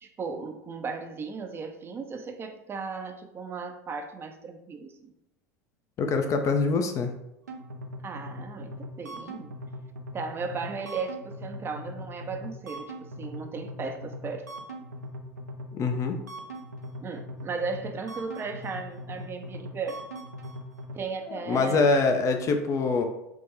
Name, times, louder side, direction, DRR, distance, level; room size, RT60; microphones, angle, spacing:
voice 1, 0.0-5.1 8.0-9.6 10.1-14.5 17.0-20.0 21.0-21.9, right 4 dB, 25° right, 6 dB, 0.5 m, -36 dB
voice 2, 6.0-7.1 15.7-16.2 21.3-23.0, left 4 dB, 35° left, 5 dB, 0.5 m, -24 dB
sound 1, 7.4-21.0, equal, 85° right, 0.4 m, -41 dB
3.6 x 2.2 x 3.3 m, 0.86 s
figure-of-eight pair, 75°, 9 cm